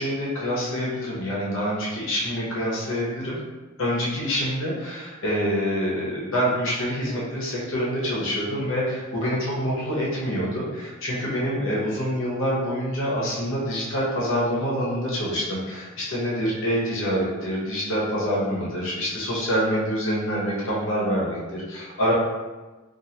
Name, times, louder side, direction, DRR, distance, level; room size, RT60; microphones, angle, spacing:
voice 1, 0.0-3.4 3.8-22.1, equal, 65° left, -6 dB, 1.0 m, -26 dB
2.6 x 2.6 x 2.8 m, 1.2 s
head